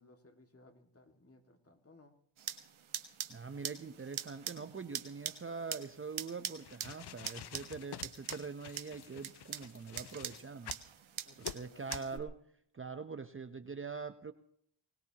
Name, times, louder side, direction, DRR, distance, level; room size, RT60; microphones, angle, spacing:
voice 1, 0.0-2.2 11.3-12.4, left 3 dB, 30° left, 6 dB, 2.1 m, -59 dB
sound 1, 2.4-12.2, right 9 dB, 70° right, 1.3 m, -44 dB
voice 2, 3.3-10.8 11.4-12.3 12.7-14.3, right 5 dB, 25° right, 10 dB, 0.7 m, -43 dB
sound 2, 6.5-10.9 11.4-11.6 11.9-12.1, left 11 dB, 55° left, 0.6 m, -48 dB
21.0 x 19.0 x 2.9 m, 0.65 s
cardioid pair, 75°, 49 cm